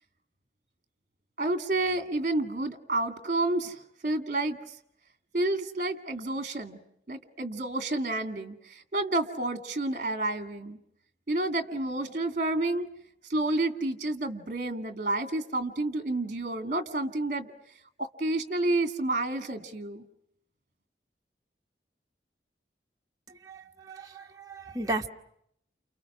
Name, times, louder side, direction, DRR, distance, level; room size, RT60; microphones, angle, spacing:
voice 1, 1.4-4.6 5.3-6.8 7.1-10.8 11.3-12.9 13.3-17.5 18.0-20.0, right 2 dB, 45° right, 8 dB, 2.2 m, -30 dB
voice 2, 23.4-25.1, right 2 dB, 20° right, 2 dB, 1.3 m, -35 dB
30.0 x 29.0 x 6.1 m, 0.72 s
head